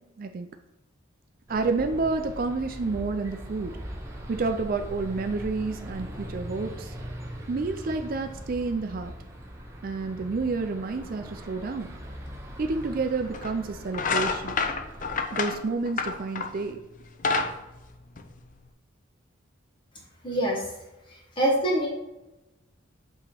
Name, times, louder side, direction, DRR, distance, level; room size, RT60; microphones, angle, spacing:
voice 1, 0.2-0.5 1.5-3.7 4.3-6.9 7.5-9.1 9.8-11.9 12.6-14.6 15.3-16.8, right 3 dB, 45° right, 6 dB, 0.4 m, -29 dB
sound 1, 1.5-15.2, equal, 15° right, 0.7 m, -41 dB
sound 2, 12.6-12.7 13.3-13.5 13.9-16.6 17.0-18.7, left 4 dB, 40° left, 0.5 m, -28 dB
voice 2, 20.2-20.7 21.1-21.9, right 1 dB, 25° left, -2 dB, 1.4 m, -25 dB
7.7 x 3.0 x 4.3 m, 1.0 s
head